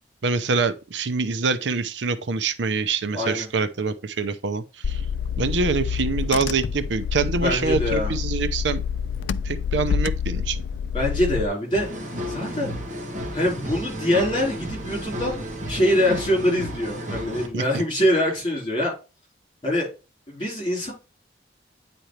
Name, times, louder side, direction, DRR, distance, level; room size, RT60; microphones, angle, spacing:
voice 1, 0.2-5.0 5.4-8.8 9.4-10.6 17.5-17.8, right 4 dB, 80° right, 0.7 m, -25 dB
voice 2, 3.1-3.5 7.4-8.1 10.9-11.9 12.3-12.8 13.3-18.9 19.6-19.9 20.3-20.9, equal, 25° left, 4.1 m, -24 dB
Car / Engine, 4.8-11.5, left 7 dB, 80° left, 0.3 m, -27 dB
sound 1, 11.7-17.5, equal, 40° right, 1.8 m, -32 dB
8.9 x 4.4 x 3.2 m
head